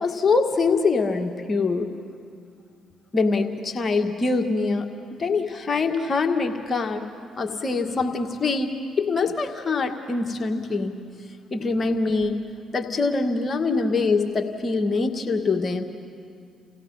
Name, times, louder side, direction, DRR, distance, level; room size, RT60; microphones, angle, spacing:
voice 1, 0.0-1.9 3.1-4.9 5.2-7.1 7.4-8.7 9.0-10.9 11.5-12.4 12.7-15.8, left 4 dB, 35° left, 4 dB, 2.0 m, -24 dB
29.0 x 16.5 x 5.8 m, 2.3 s
hypercardioid pair, 50°, 0 cm